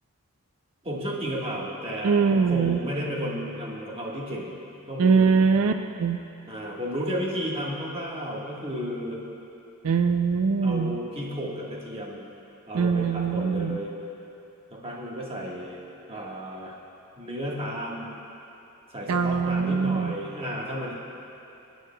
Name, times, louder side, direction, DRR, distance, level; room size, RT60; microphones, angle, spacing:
voice 1, 0.8-4.5 4.9-5.5 6.5-9.2 10.6-12.2 12.7-13.9 14.7-15.8 16.1-16.8 17.2-18.1 18.9-20.9, equal, 25° right, -4 dB, 1.4 m, -33 dB
voice 2, 2.0-2.8 5.0-6.2 9.8-11.0 12.7-13.8 19.1-20.1, right 5 dB, 80° right, 7 dB, 0.4 m, -22 dB
21.5 x 9.2 x 2.2 m, 2.8 s
head